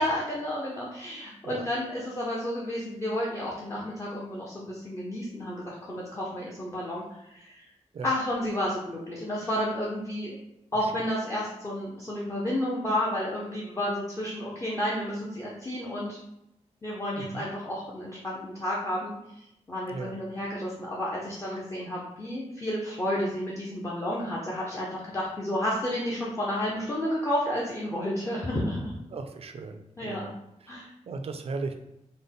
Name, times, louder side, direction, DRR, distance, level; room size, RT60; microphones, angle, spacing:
voice 1, 0.0-7.6 8.0-10.4 10.7-16.2 16.8-29.0 30.0-30.3 30.7-30.9, left 1 dB, 25° left, -5 dB, 0.6 m, -31 dB
voice 2, 29.1-30.3 30.6-31.8, right 3 dB, 55° right, 6 dB, 0.4 m, -37 dB
3.8 x 2.1 x 3.6 m, 0.85 s
wide cardioid pair, 110°, 12 cm